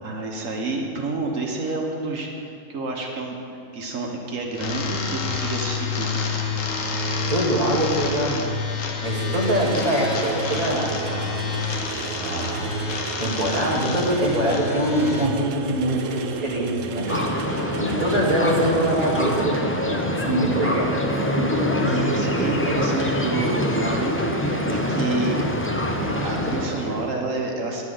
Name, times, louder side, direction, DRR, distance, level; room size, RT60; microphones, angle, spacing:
voice 1, 0.0-2.3 2.7-3.4 3.7-6.2 6.5-6.6 21.8-25.4 25.9-27.8, right 3 dB, 65° right, 1 dB, 1.5 m, -29 dB
sound 1, 4.5-15.3, left 4 dB, 70° left, 1.3 m, -28 dB
voice 2, 7.3-8.7 9.0-11.5 12.2-12.7 13.2-17.1 17.8-21.8, right 1 dB, 30° right, -2 dB, 1.7 m, -24 dB
sound 2, 9.0-19.5, right 6 dB, 90° right, 1.1 m, -34 dB
sound 3, 17.1-27.1, left 1 dB, 15° left, 0.5 m, -25 dB
10.5 x 6.1 x 7.6 m, 2.8 s
omnidirectional pair, 1.5 m